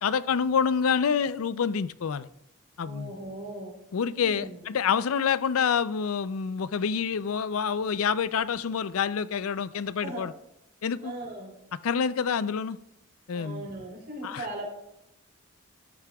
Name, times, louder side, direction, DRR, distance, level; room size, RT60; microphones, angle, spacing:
voice 1, 0.0-2.3 2.8-3.1 3.9-10.3 10.8-11.1 11.8-12.8 13.3-13.7 14.2-14.5, left 6 dB, 85° left, 16 dB, 0.4 m, -27 dB
voice 2, 2.8-3.7 4.1-4.6 9.7-10.2 11.0-11.5 13.3-14.7, right 2 dB, 50° right, -1 dB, 3.3 m, -39 dB
13.0 x 9.6 x 2.3 m, 0.84 s
head